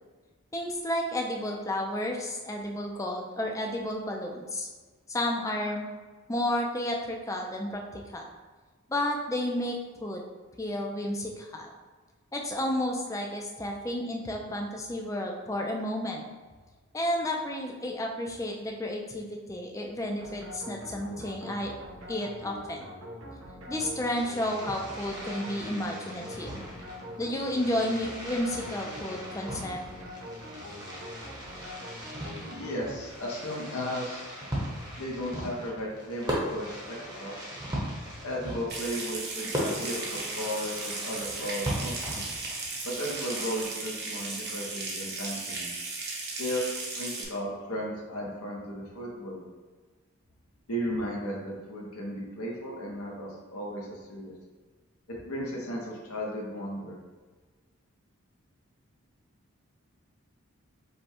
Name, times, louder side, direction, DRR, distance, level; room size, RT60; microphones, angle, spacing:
voice 1, 0.5-4.7 5.1-5.9 6.3-8.3 8.9-10.2 10.6-11.7 12.3-16.2 16.9-21.7 22.1-22.9 23.7-26.5 27.2-29.8, left 1 dB, 15° left, 1 dB, 0.4 m, -32 dB
sound 1, 20.2-33.5, left 1 dB, 75° right, 0.9 m, -44 dB
Fireworks, 23.8-43.6, equal, 20° right, 0.9 m, -39 dB
voice 2, 32.3-34.3 35.0-37.4 38.2-41.9 42.8-45.7 46.4-46.7 46.9-49.4 50.7-54.3 55.1-57.0, equal, 85° left, -3 dB, 1.0 m, -35 dB
Water tap faucet / Sink (filling or washing) / Trickle dribble, 38.7-47.2, right 3 dB, 50° right, 0.9 m, -36 dB
5.2 x 2.3 x 4.3 m, 1.4 s
head